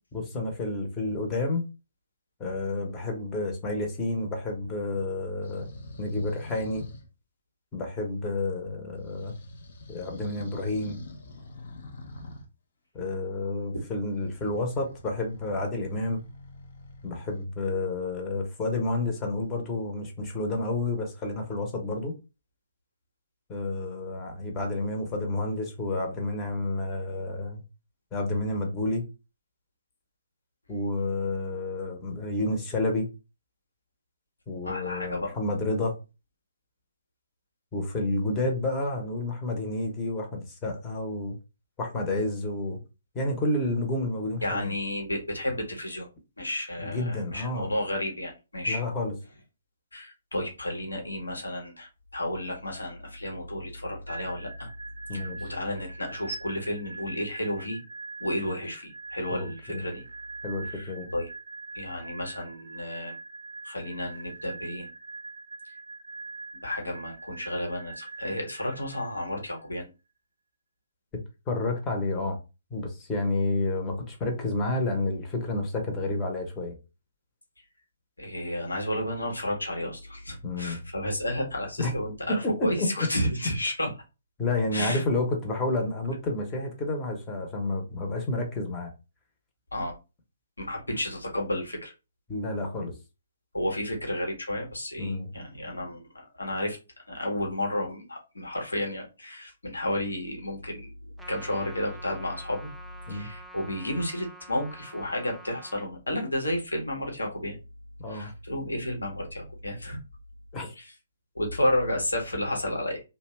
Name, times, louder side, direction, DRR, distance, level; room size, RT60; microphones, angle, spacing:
voice 1, 0.1-1.6 2.4-5.7 6.0-6.9 7.7-9.3 9.9-11.0 12.9-16.2 17.0-22.2 23.5-27.6 28.1-29.0 30.7-33.1 34.5-36.0 37.7-41.4 41.8-42.8 43.1-44.7 46.8-47.7 48.7-49.1 55.1-55.5 59.3-59.8 60.4-61.1 71.5-72.4 72.7-76.8 80.4-80.8 81.8-81.9 82.3-83.1 84.4-88.9 92.3-92.9 95.0-95.3 103.1-103.3 108.0-108.3 110.5-110.7, left 2 dB, 20° left, 0.8 m, -30 dB
sound 1, 5.4-7.1 9.0-12.5 14.2-17.5, left 2 dB, 55° left, 0.6 m, -45 dB
voice 2, 34.6-35.3 44.4-46.1 46.4-48.8 49.9-54.7 55.1-57.8 58.2-60.0 60.7-61.3 61.7-63.2 63.6-64.9 66.6-69.9 78.2-83.9 84.7-85.0 89.7-89.9 90.6-91.9 93.5-96.8 97.1-100.9 101.3-102.7 103.1-107.6 108.1-110.0 110.8-110.9 111.3-113.0, left 1 dB, 85° left, 1.0 m, -32 dB
sound 2, 54.1-69.7, right 3 dB, 65° right, 0.4 m, -43 dB
Trumpet, 101.2-105.9, right 2 dB, ahead, 0.3 m, -48 dB
2.6 x 2.2 x 3.2 m
figure-of-eight pair, 130°, 0 cm